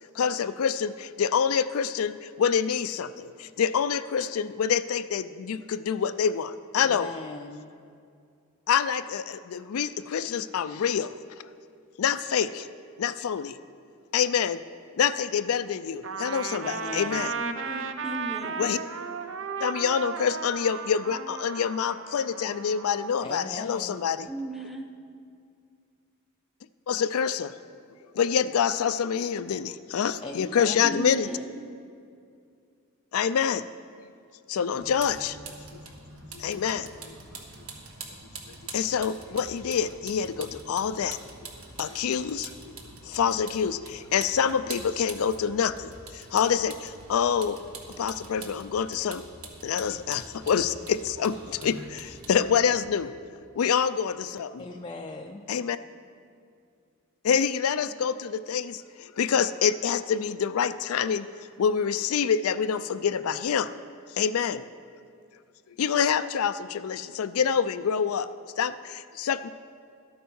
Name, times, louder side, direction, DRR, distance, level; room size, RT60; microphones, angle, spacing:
voice 1, 0.2-7.1 8.7-11.1 12.0-12.7 13.0-13.6 14.1-14.6 15.0-17.3 18.6-18.8 19.6-24.3 26.9-27.5 28.2-31.3 33.1-33.6 34.5-35.4 36.3-37.1 38.7-41.2 41.8-42.5 43.1-45.9 46.3-47.6 48.0-49.2 49.6-53.1 53.6-54.6 55.5-55.8 57.2-58.8 59.2-61.3 61.6-63.7 64.2-64.6 65.8-68.3 68.6-69.5, left 7 dB, 90° left, 0.4 m, -26 dB
voice 2, 6.8-7.7 16.6-17.4 23.2-24.0 30.2-31.1 54.6-55.4, left 2 dB, 25° left, 0.4 m, -39 dB
Trumpet, 16.0-23.1, right 5 dB, 60° right, 0.6 m, -35 dB
voice 3, 17.4-18.7 24.3-24.9 30.8-31.6, right 1 dB, ahead, 0.7 m, -36 dB
Vehicle, 34.8-52.8, right 3 dB, 80° right, 1.5 m, -45 dB
12.5 x 8.8 x 5.5 m
head